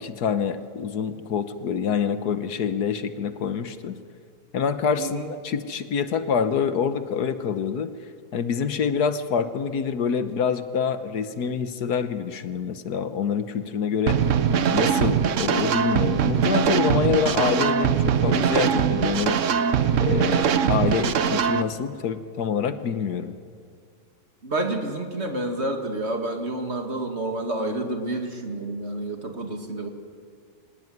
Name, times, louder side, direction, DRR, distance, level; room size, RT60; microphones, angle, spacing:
voice 1, 0.0-4.0 4.5-7.9 8.3-14.2 14.7-19.4 20.0-23.3, left 6 dB, 75° left, 11 dB, 1.6 m, -26 dB
voice 2, 5.0-5.3 24.4-29.9, right 1 dB, 40° right, 4 dB, 2.4 m, -29 dB
sound 1, 14.1-21.6, right 7 dB, 55° right, 1.0 m, -22 dB
25.0 x 18.5 x 9.4 m, 2.1 s
omnidirectional pair, 1.7 m